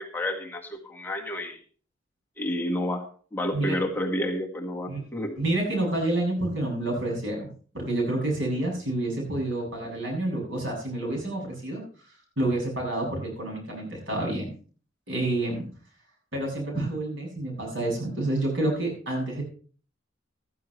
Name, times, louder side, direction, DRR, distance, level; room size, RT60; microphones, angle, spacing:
voice 1, 0.0-1.6 2.4-3.1 3.3-5.4, left 1 dB, 10° left, 0 dB, 1.7 m, -30 dB
voice 2, 5.4-11.8 12.4-14.5 15.1-15.7 16.3-19.4, right 1 dB, 75° right, -1 dB, 7.5 m, -28 dB
15.5 x 13.5 x 3.3 m, 0.42 s
head